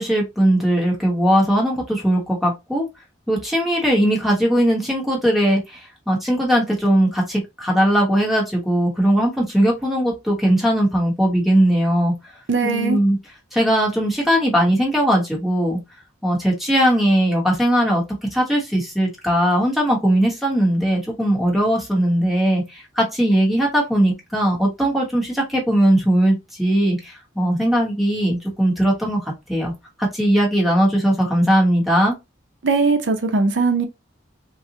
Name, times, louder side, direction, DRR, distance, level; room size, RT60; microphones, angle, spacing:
voice 1, 0.0-2.8 3.3-12.1 12.6-13.2 13.5-15.8 16.2-18.0 18.3-29.7 30.0-32.1, equal, ahead, 0.9 m, -19 dB
voice 2, 12.5-13.0 32.6-33.9, right 4 dB, 65° right, 0.6 m, -19 dB
3.9 x 2.0 x 2.7 m
head